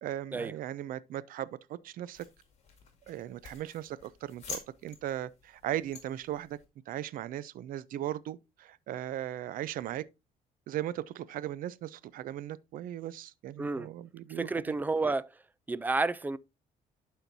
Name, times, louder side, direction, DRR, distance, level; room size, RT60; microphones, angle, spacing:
voice 1, 0.0-2.3 3.1-6.6 6.9-10.0 10.7-14.7, right 12 dB, 70° right, 0.5 m, -38 dB
sound 1, 2.1-6.7, left 5 dB, 45° left, 2.2 m, -48 dB
voice 2, 13.6-13.9 14.4-15.3 15.7-16.4, right 3 dB, 10° right, 0.3 m, -30 dB
11.5 x 4.5 x 2.6 m
cardioid pair, 135°, 15 cm